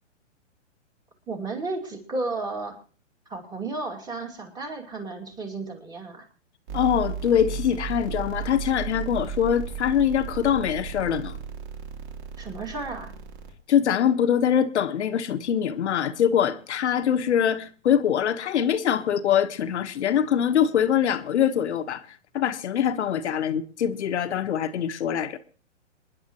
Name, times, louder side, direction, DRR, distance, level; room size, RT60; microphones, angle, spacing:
voice 1, 1.3-2.8 3.3-6.3 12.4-13.1, right 3 dB, 10° right, 2.4 m, -33 dB
voice 2, 6.7-11.4 13.7-22.0 22.3-25.4, left 9 dB, 65° left, 1.4 m, -23 dB
sound 1, 6.7-13.5, right 7 dB, 45° right, 3.3 m, -35 dB
27.5 x 10.5 x 3.0 m
hypercardioid pair, 145°, 37 cm